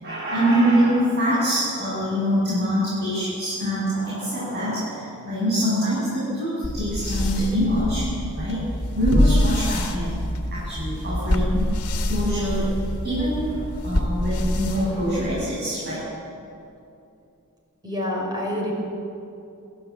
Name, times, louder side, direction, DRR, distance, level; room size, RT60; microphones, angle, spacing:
voice 1, 0.0-8.1 8.3-8.6 9.0-10.2 10.5-11.7 12.1-12.7 13.0-16.0, equal, 45° right, -8 dB, 7.7 m, -24 dB
sound 1, 6.6-15.6, left 1 dB, 85° left, 2.3 m, -25 dB
voice 2, 17.8-18.7, left 1 dB, 20° right, -2 dB, 5.7 m, -27 dB
27.0 x 14.5 x 8.7 m, 2.7 s
head